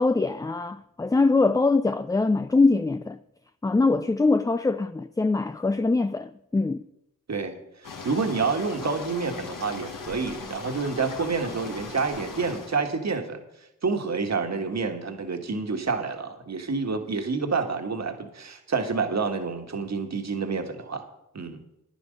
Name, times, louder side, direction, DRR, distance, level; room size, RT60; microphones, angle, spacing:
voice 1, 0.0-3.2 3.6-6.8, left 3 dB, 10° left, 0.3 m, -23 dB
sound 1, 7.8-12.8, left 4 dB, 65° left, 1.6 m, -39 dB
voice 2, 8.0-13.4 13.8-21.1 21.3-21.6, right 4 dB, 50° right, 1.7 m, -28 dB
10.0 x 9.6 x 5.3 m
cardioid pair, 45°, 35 cm